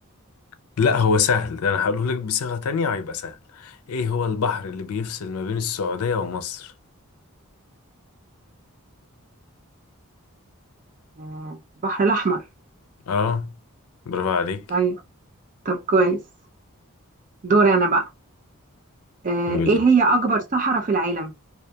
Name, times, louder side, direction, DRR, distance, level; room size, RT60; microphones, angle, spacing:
voice 1, 0.8-6.7 13.1-13.6 14.1-14.7 19.5-19.8, left 5 dB, 80° left, 0.4 m, -24 dB
voice 2, 11.2-12.4 14.7-15.0 15.7-16.2 17.4-18.1 19.2-21.3, right 3 dB, 35° right, 0.4 m, -20 dB
2.3 x 2.2 x 2.7 m
head